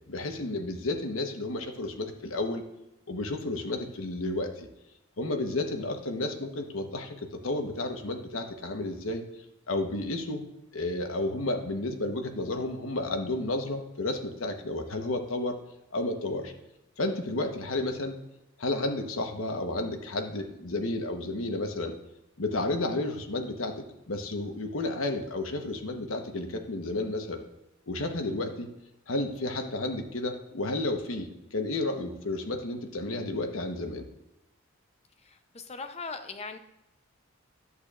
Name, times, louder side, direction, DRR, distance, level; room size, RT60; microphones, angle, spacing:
voice 1, 0.1-2.6 3.1-4.7 5.2-9.2 9.7-10.4 10.7-15.6 15.9-16.5 17.0-18.2 18.6-22.0 22.4-27.4 27.9-28.7 29.1-34.0, left 2 dB, 75° left, 5 dB, 1.1 m, -32 dB
voice 2, 35.2-36.6, left 4 dB, 30° left, 7 dB, 0.7 m, -39 dB
11.0 x 8.5 x 2.5 m, 0.91 s
head